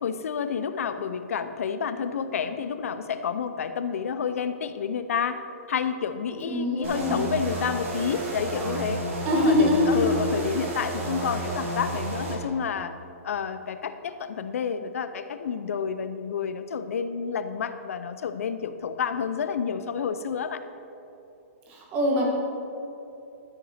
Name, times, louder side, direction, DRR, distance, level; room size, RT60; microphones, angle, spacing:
voice 1, 0.0-5.4 5.7-9.0 9.3-12.9 13.2-20.6, left 6 dB, 70° left, 11 dB, 0.6 m, -29 dB
voice 2, 6.4-7.3 9.2-10.1 21.7-22.3, left 1 dB, 20° right, -1 dB, 1.4 m, -23 dB
sound 1, 6.8-12.4, right 2 dB, 60° right, 2.0 m, -31 dB
13.0 x 5.7 x 4.2 m, 2.9 s
hypercardioid pair, 170°, 8 cm